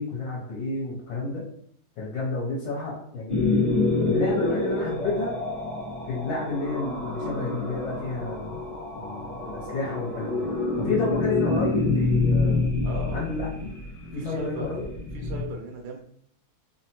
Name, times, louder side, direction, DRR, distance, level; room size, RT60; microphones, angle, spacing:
voice 1, 0.0-1.4 2.0-3.4 4.0-5.3 6.0-8.6 9.0-10.4 10.8-12.7 13.1-13.7 14.1-14.8, left 3 dB, 75° left, -4 dB, 1.4 m, -30 dB
sound 1, 3.3-15.4, left 3 dB, 55° left, 0.4 m, -27 dB
voice 2, 12.8-13.2 14.2-14.7 15.1-16.0, right 3 dB, 75° right, 1 dB, 1.2 m, -36 dB
3.5 x 2.1 x 2.8 m, 0.66 s
omnidirectional pair, 2.3 m